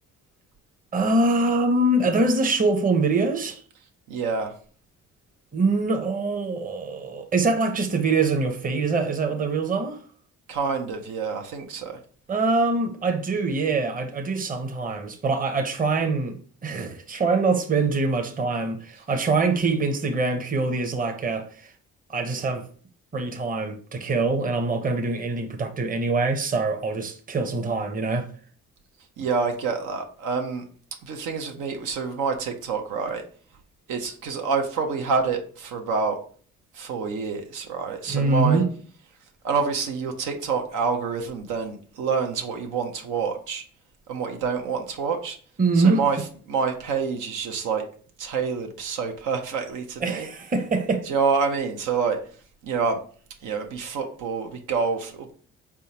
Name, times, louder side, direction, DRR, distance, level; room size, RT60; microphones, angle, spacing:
voice 1, 0.9-3.6 5.5-10.0 12.3-16.4 16.6-21.7 22.1-22.7 23.1-28.3 38.1-38.7 45.6-46.0 50.0-51.0, right 3 dB, 30° right, 0.7 m, -24 dB
voice 2, 4.1-4.5 10.5-12.0 29.2-30.6 31.0-33.2 33.9-36.2 36.7-38.6 39.4-43.6 44.1-45.4 45.7-46.2 46.5-47.8 48.2-50.3 51.1-52.2 52.6-53.0 53.4-55.3, right 5 dB, 90° right, 0.8 m, -27 dB
4.3 x 3.5 x 2.9 m
cardioid pair, 90°, 30 cm